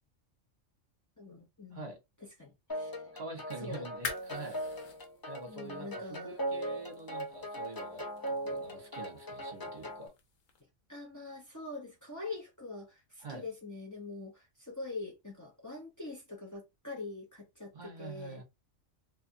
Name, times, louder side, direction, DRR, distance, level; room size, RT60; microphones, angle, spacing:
voice 1, 1.2-1.9 2.2-3.1 3.6-3.9 5.5-6.3 10.9-17.7 18.0-18.4, left 3 dB, 20° left, 0.7 m, -44 dB
sound 1, 2.7-10.1, right 1 dB, 40° left, 0.3 m, -39 dB
voice 2, 3.1-4.6 5.3-10.1 13.2-13.5 17.7-18.4, right 3 dB, 40° right, 1.1 m, -45 dB
sound 2, 3.8-10.6, left 5 dB, 90° left, 1.1 m, -48 dB
2.7 x 2.4 x 2.6 m
omnidirectional pair, 1.3 m